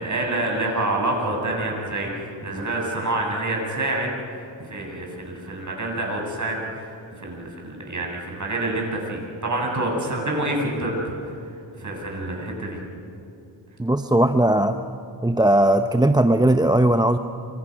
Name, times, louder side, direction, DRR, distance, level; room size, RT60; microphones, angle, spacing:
voice 1, 0.0-4.1 4.6-11.3 11.8-12.8, right 2 dB, 40° right, -1 dB, 7.8 m, -27 dB
voice 2, 13.8-14.8 15.2-17.2, right 1 dB, 10° right, 8 dB, 0.8 m, -18 dB
29.0 x 25.0 x 6.2 m, 2.7 s
cardioid pair, 75°, 46 cm